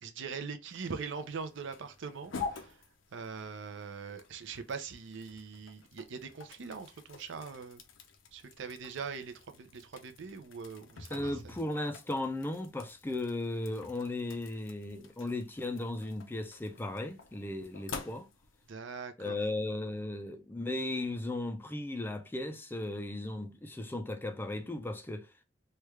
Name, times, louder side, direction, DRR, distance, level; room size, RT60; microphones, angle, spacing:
voice 1, 0.0-2.8 3.1-7.8 8.3-11.5 18.7-19.4, right 5 dB, 65° right, 0.5 m, -42 dB
Opening the Freezer, 0.7-18.7, left 5 dB, 70° left, 0.5 m, -48 dB
voice 2, 11.1-18.3 19.2-25.4, left 2 dB, 10° left, 0.4 m, -36 dB
3.2 x 2.3 x 3.1 m
head